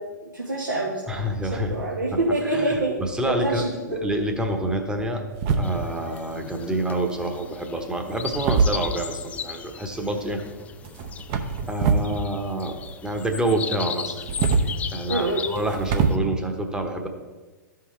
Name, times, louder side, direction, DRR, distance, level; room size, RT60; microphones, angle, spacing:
voice 1, 0.0-1.2 1.5-2.9 3.3-3.6 3.9-4.1 15.1-15.4, right 2 dB, 90° right, -6 dB, 1.5 m, -26 dB
voice 2, 1.1-1.7 2.4-5.2 5.5-10.4 11.7-14.2 14.9-17.1, right 1 dB, 10° right, 4 dB, 1.0 m, -27 dB
sound 1, 5.3-6.1 7.1-7.5 8.2-9.3 10.8-12.2 12.4-13.3 14.1-16.1, right 5 dB, 40° right, 0.8 m, -25 dB
sound 2, 5.6-16.2, left 7 dB, 15° left, 0.3 m, -37 dB
13.5 x 5.8 x 3.2 m, 1.3 s
figure-of-eight pair, 110°, 10 cm